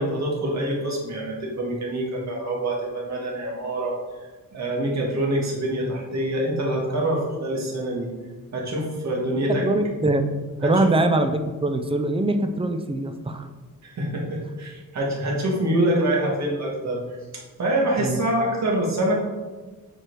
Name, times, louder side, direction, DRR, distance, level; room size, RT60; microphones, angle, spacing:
voice 1, 0.0-4.0 4.5-8.1 8.5-9.7 10.6-10.9 13.8-17.0 17.3-19.1, right 1 dB, 50° right, -2 dB, 2.0 m, -25 dB
voice 2, 9.6-10.2 10.6-13.4 18.0-18.2, right 2 dB, 15° right, 7 dB, 0.5 m, -23 dB
7.8 x 4.7 x 4.7 m, 1.3 s
wide cardioid pair, 155°, 34 cm